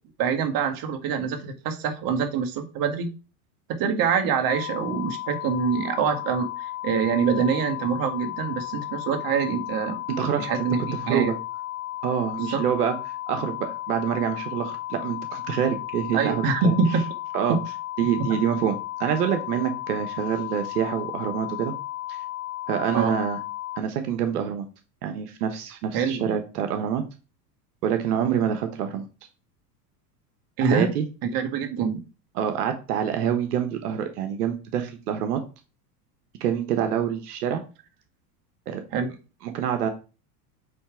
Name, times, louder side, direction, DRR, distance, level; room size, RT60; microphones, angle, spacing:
voice 1, 0.2-3.1 3.8-10.0 10.4-10.8 11.1-11.3 12.4-12.6 16.1-17.0 17.5-17.6 18.2-18.3 22.9-23.2 25.9-26.4 30.6-30.9 31.2-32.0 38.9-39.1, right 6 dB, 50° right, 5 dB, 1.7 m, -25 dB
sound 1, 4.5-23.8, left 15 dB, 30° left, 0.4 m, -34 dB
voice 2, 10.1-10.5 11.0-11.3 12.0-12.9 13.3-16.7 17.3-17.6 18.0-21.7 22.1-22.2 22.7-23.4 23.8-24.7 25.0-27.0 27.8-29.0 30.6-31.0 32.3-35.4 36.4-37.6 38.7-38.8 39.4-39.9, right 9 dB, 85° right, 6 dB, 1.2 m, -26 dB
8.4 x 3.3 x 5.1 m, 0.33 s
supercardioid pair, 115°, 45 cm